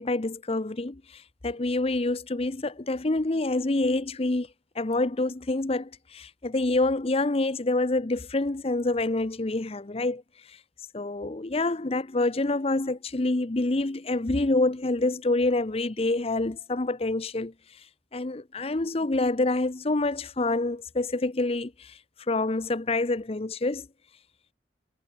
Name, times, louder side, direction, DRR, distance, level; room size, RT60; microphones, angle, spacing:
voice 1, 0.0-4.5 4.8-10.2 10.9-17.5 18.1-22.0 22.3-23.9, left 2 dB, 35° left, 0.8 m, -27 dB
head